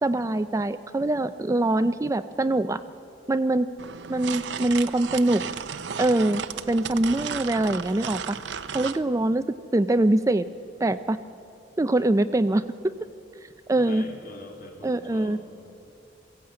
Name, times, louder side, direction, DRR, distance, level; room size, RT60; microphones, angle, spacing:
voice 1, 0.0-2.8 3.3-3.7 4.1-5.4 6.0-8.4 8.7-9.4 9.7-10.5 10.8-11.2 11.8-12.6 13.7-14.0 14.8-15.4, right 2 dB, 15° right, 11 dB, 0.4 m, -23 dB
sound 1, 3.8-9.0, right 6 dB, 75° right, 0.7 m, -34 dB
voice 2, 13.7-15.6, left 1 dB, 55° left, 1 dB, 3.2 m, -43 dB
21.5 x 16.5 x 8.7 m, 2.5 s
head